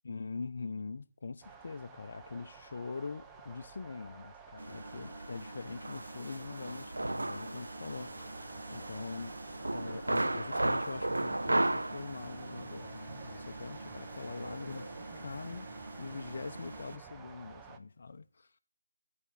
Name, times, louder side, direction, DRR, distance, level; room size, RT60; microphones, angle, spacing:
voice 1, 0.0-8.2 8.7-9.3 9.7-14.9 15.2-15.7 16.0-18.5, left 4 dB, 50° left, 0.6 m, -43 dB
sound 1, 1.4-17.8, right 6 dB, 10° right, 0.5 m, -52 dB
sound 2, 4.6-17.0, right 2 dB, 85° right, 0.5 m, -37 dB
12.0 x 4.3 x 7.2 m
figure-of-eight pair, 160°, 0 cm